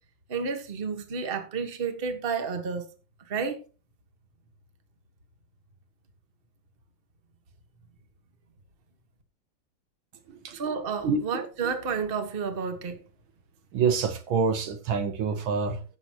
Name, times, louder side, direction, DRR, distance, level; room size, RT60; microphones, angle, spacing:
voice 1, 0.3-2.9 3.2-3.6 10.5-13.0, right 5 dB, 30° right, 1.3 m, -31 dB
voice 2, 10.3-10.6 11.0-11.4 13.7-15.8, right 5 dB, 70° right, 1.7 m, -27 dB
16.5 x 7.1 x 2.9 m
omnidirectional pair, 2.4 m